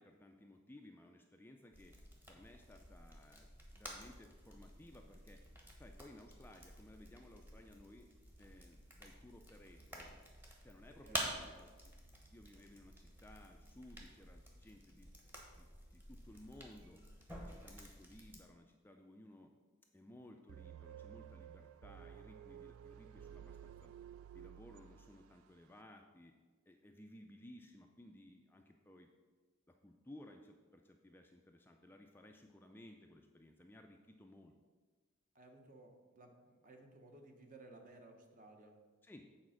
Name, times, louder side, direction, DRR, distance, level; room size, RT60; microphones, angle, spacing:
voice 1, 0.0-2.0 2.3-5.4 5.8-8.1 8.4-10.2 10.6-15.1 15.5-15.7 15.9-17.0 17.3-19.5 19.9-23.9 24.3-26.3 26.7-29.1 29.7-34.5 39.0-39.3, left 1 dB, 10° left, 3 dB, 0.3 m, -59 dB
sound 1, 1.7-18.4, equal, 10° right, 1.1 m, -50 dB
sound 2, 20.5-25.5, right 9 dB, 75° right, 0.3 m, -54 dB
voice 2, 35.3-38.7, right 2 dB, 40° right, 3 dB, 1.0 m, -58 dB
8.3 x 4.3 x 6.3 m, 1.4 s
head